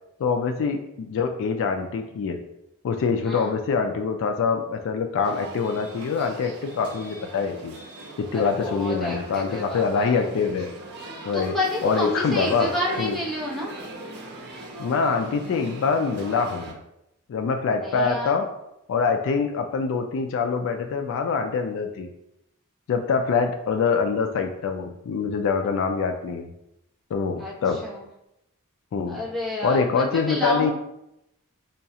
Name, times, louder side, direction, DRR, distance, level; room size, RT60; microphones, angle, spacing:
voice 1, 0.2-2.4 2.8-7.7 8.2-10.7 11.2-11.5 11.8-12.7 13.0-13.2 14.8-16.7 17.3-18.5 18.9-22.1 22.9-26.5 27.1-27.8 28.9-29.2 29.6-30.7, left 5 dB, 65° left, 6 dB, 0.3 m, -24 dB
sound 1, 5.2-16.7, right 1 dB, 55° right, 0.7 m, -40 dB
voice 2, 8.3-10.2 11.0-13.7 17.8-18.4 27.4-28.0 29.1-30.7, left 1 dB, ahead, -6 dB, 0.9 m, -30 dB
5.0 x 2.3 x 2.7 m, 0.85 s
head